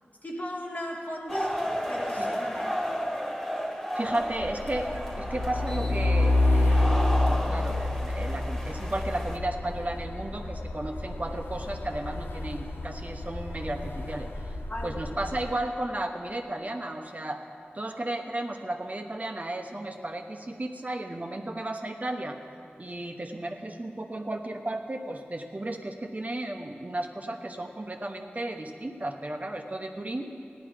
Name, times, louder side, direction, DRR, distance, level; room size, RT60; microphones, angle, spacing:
voice 1, 0.2-3.0 14.7-15.0 18.0-18.1, left 1 dB, 45° left, 0 dB, 1.3 m, -37 dB
sound 1, 1.3-9.4, equal, 10° left, 1.9 m, -33 dB
voice 2, 3.9-4.9 5.2-14.5 14.8-17.4 17.7-22.4 22.8-30.3, right 1 dB, 40° right, 4 dB, 1.0 m, -34 dB
Truck, 4.2-15.6, left 2 dB, 75° left, 0.8 m, -29 dB
16.0 x 10.5 x 5.1 m, 2.4 s
wide cardioid pair, 65°, 4 cm